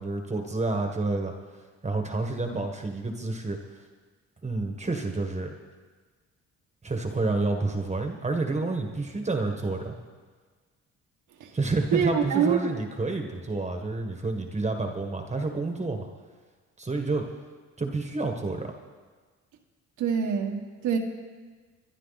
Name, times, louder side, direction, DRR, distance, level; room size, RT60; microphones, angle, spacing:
voice 1, 0.0-1.3 1.8-3.8 4.4-5.5 6.8-9.9 11.5-16.1 16.8-17.3 17.8-18.7, right 3 dB, 20° right, 4 dB, 1.6 m, -29 dB
voice 2, 11.9-12.6 20.0-20.6 20.8-21.0, right 7 dB, 85° right, 3 dB, 1.8 m, -24 dB
24.5 x 11.0 x 4.2 m, 1.4 s
cardioid pair, 90°, 30 cm